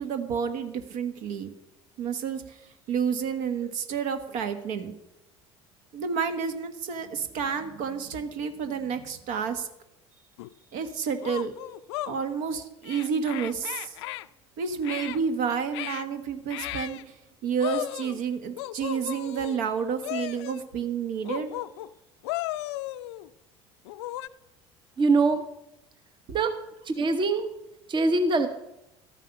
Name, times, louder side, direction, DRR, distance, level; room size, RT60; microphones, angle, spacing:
voice 1, 0.0-1.5 2.0-2.6 2.9-4.9 5.9-9.7 10.7-11.5 12.1-13.9 14.6-17.2 17.4-21.5, right 6 dB, 60° right, 8 dB, 1.4 m, -30 dB
sound 1, 10.4-10.5 11.2-12.2 12.8-14.3 14.8-15.2 15.7-16.1 16.5-17.0 17.6-18.2 18.6-19.6 20.0-20.6 21.2-21.9 22.2-23.3 23.9-24.3, left 17 dB, 70° left, 0.4 m, -35 dB
voice 2, 25.0-25.4 26.3-26.6 26.8-27.5 27.9-28.5, right 3 dB, 35° right, 8 dB, 1.1 m, -23 dB
13.0 x 9.0 x 5.8 m, 0.88 s
figure-of-eight pair, 65°, 15 cm